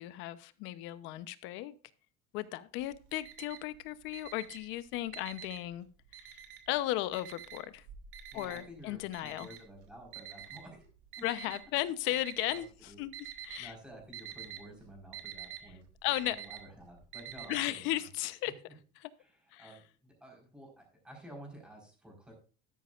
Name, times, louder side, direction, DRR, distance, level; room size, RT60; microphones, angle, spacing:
voice 1, 0.0-1.7 2.3-5.9 6.2-7.8 8.3-9.5 11.2-13.2 13.4-13.7 16.0-16.4 17.5-18.5 19.0-19.1 19.5-19.7, left 15 dB, 65° left, 14 dB, 0.9 m, -35 dB
Alarm, 2.8-3.8 4.1-5.7 6.1-6.8 7.1-11.6 12.1-12.7 13.0-13.7 13.9-17.6, right 10 dB, 70° right, 2.5 m, -46 dB
voice 2, 8.3-10.9 11.2-11.3 12.5-18.1 18.4-18.5 19.2-22.3, equal, 5° right, 0 dB, 4.6 m, -52 dB
13.0 x 10.5 x 2.5 m, 0.37 s
cardioid pair, 155°, 21 cm